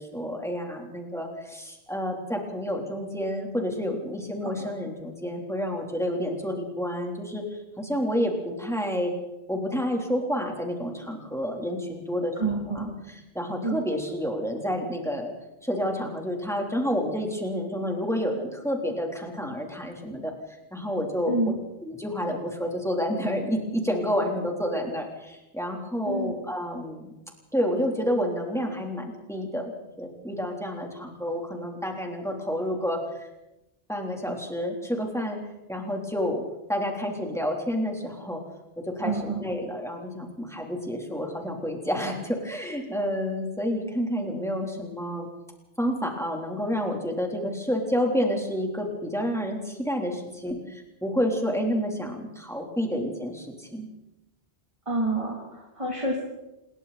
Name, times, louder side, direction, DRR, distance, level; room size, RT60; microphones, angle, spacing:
voice 1, 0.0-7.4 7.8-9.1 9.5-12.3 12.7-12.9 13.3-15.3 15.6-20.3 20.7-21.3 21.8-27.1 27.5-33.3 33.9-35.4 35.7-36.4 36.7-38.4 38.8-45.3 45.8-53.9, equal, 5° left, 1 dB, 3.7 m, -29 dB
voice 2, 12.4-12.9 13.6-13.8 21.3-21.6 26.1-26.4 39.0-39.4 54.9-56.2, right 2 dB, 30° right, -3 dB, 3.6 m, -28 dB
28.0 x 22.0 x 4.3 m, 0.95 s
omnidirectional pair, 1.1 m